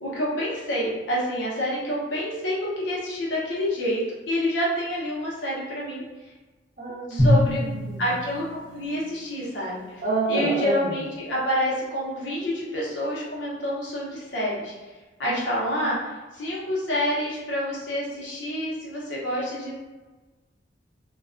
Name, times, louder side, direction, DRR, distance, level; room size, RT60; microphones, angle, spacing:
voice 1, 0.0-4.0 4.3-6.0 7.1-7.6 8.0-10.0 10.3-14.7 15.2-16.0 16.3-19.8, equal, 80° left, -6 dB, 0.8 m, -28 dB
voice 2, 6.8-8.1 10.0-11.0 15.3-16.0, right 3 dB, 45° right, -5 dB, 0.6 m, -29 dB
Drum, 7.2-10.1, left 1 dB, 20° left, 0.8 m, -26 dB
2.3 x 2.2 x 2.4 m, 1.2 s
head